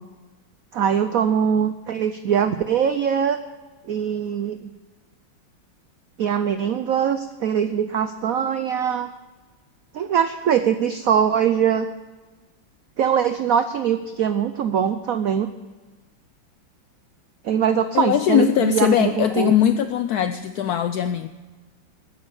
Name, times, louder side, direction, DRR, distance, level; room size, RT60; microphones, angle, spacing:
voice 1, 0.7-3.4 3.9-4.7 6.2-9.1 9.9-11.9 13.0-15.5 17.4-19.6, right 8 dB, 75° right, 10 dB, 0.8 m, -22 dB
voice 2, 17.9-21.3, left 10 dB, 75° left, 10 dB, 0.9 m, -20 dB
13.0 x 9.9 x 7.0 m, 1.3 s
omnidirectional pair, 2.2 m